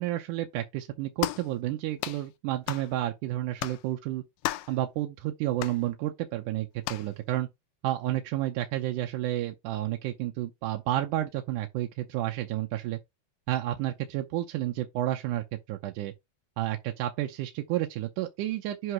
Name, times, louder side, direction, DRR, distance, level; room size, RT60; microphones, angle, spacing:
voice 1, 0.0-4.2 4.7-7.5 7.8-13.0 13.5-16.1 16.6-18.9, right 14 dB, 75° right, 2.0 m, -31 dB
sound 1, 1.2-1.5 2.0-2.2 2.7-2.9 3.6-3.8 4.4-4.8 5.6-5.8 6.8-7.1, left 16 dB, 85° left, 1.9 m, -33 dB
7.9 x 2.7 x 5.9 m
omnidirectional pair, 4.4 m